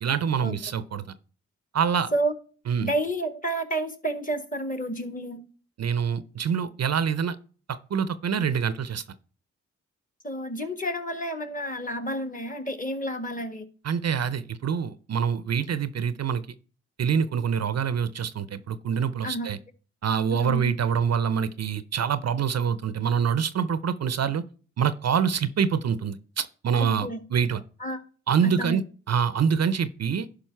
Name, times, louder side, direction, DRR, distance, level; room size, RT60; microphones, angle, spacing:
voice 1, 0.0-1.0 1.7-2.1 2.7-2.9 5.8-7.4 7.7-9.0 13.8-16.4 17.0-19.6 20.0-24.4 24.8-27.6 28.3-28.8 29.1-30.3, right 7 dB, 50° right, 15 dB, 0.6 m, -25 dB
voice 2, 2.8-5.4 10.2-13.6 19.2-19.5 20.3-20.7 26.8-27.2 27.8-28.0 28.4-28.8, right 1 dB, 25° left, 8 dB, 1.5 m, -30 dB
11.0 x 5.2 x 4.5 m, 0.40 s
cardioid pair, 55°, 32 cm